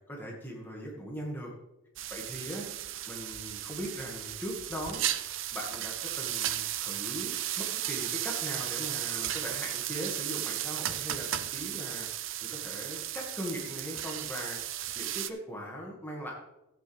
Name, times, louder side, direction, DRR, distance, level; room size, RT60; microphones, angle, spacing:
voice 1, 0.1-1.5 2.1-2.7 3.1-5.0 5.5-12.1 12.4-14.6 15.0-16.3, equal, 10° left, -2 dB, 1.9 m, -40 dB
sound 1, 2.0-15.3, right 12 dB, 70° right, 0.6 m, -35 dB
13.5 x 8.6 x 3.4 m, 0.93 s
head